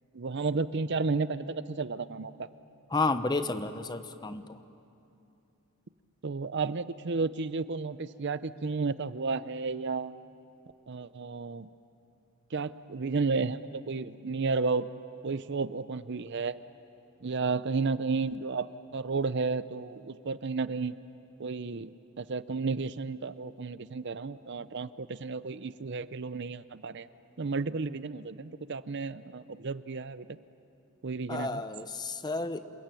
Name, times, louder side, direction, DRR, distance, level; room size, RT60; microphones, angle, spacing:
voice 1, 0.1-2.5 6.2-10.1 10.9-11.7 12.5-14.9 15.2-16.5 17.2-21.0 21.4-27.1 27.4-30.4 31.0-31.6, right 4 dB, 50° right, 15 dB, 0.6 m, -32 dB
voice 2, 2.9-4.5 31.3-32.6, left 3 dB, 20° left, 11 dB, 0.8 m, -31 dB
28.0 x 21.5 x 9.1 m, 2.8 s
head